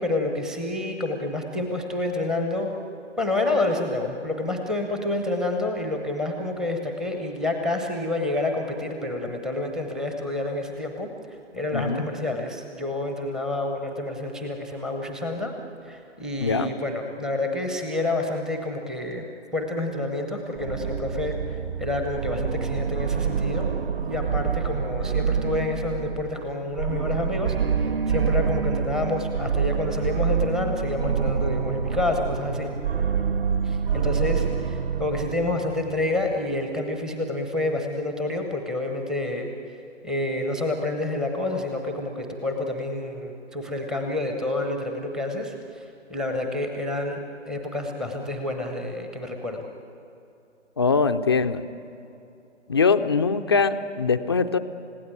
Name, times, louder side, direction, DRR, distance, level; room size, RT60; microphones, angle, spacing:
voice 1, 0.0-2.8 3.2-11.1 11.5-15.5 15.8-19.3 19.5-23.7 24.0-32.7 33.6-39.5 40.0-49.6, left 2 dB, ahead, 4 dB, 0.8 m, -28 dB
voice 2, 11.7-12.0 16.4-16.7 50.8-51.6 52.7-54.6, left 5 dB, 20° left, 8 dB, 0.5 m, -22 dB
sound 1, 20.6-36.2, right 6 dB, 50° right, 1.4 m, -27 dB
29.5 x 16.5 x 9.1 m, 2.8 s
figure-of-eight pair, 135°, 36 cm